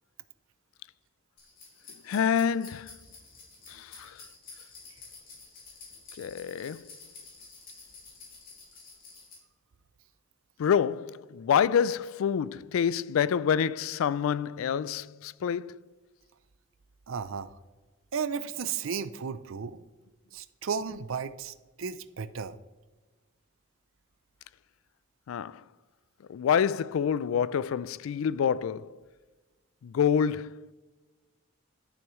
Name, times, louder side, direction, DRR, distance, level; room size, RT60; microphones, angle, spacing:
sound 1, 1.4-9.3, left 4 dB, 45° left, 3.2 m, -50 dB
voice 1, 2.0-3.0 3.7-4.2 6.2-6.9 10.6-15.8 25.3-25.6 26.3-29.0 29.8-30.7, left 7 dB, 85° left, 0.3 m, -27 dB
voice 2, 17.1-17.5 18.1-19.8 20.3-22.6, right 6 dB, 80° right, 0.5 m, -34 dB
12.0 x 7.0 x 3.1 m
head